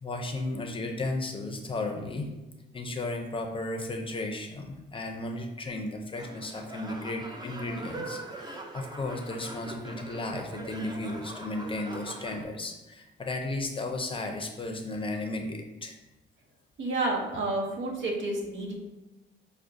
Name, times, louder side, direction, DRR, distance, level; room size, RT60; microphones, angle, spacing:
voice 1, 0.0-2.3 2.7-16.0, left 2 dB, 25° left, 3 dB, 0.5 m, -34 dB
sound 1, 6.1-12.4, right 2 dB, 20° right, 0.5 m, -42 dB
voice 2, 16.8-18.8, right 2 dB, 70° right, 1 dB, 0.8 m, -30 dB
5.9 x 2.1 x 2.6 m, 1.0 s
cardioid pair, 90°, 20 cm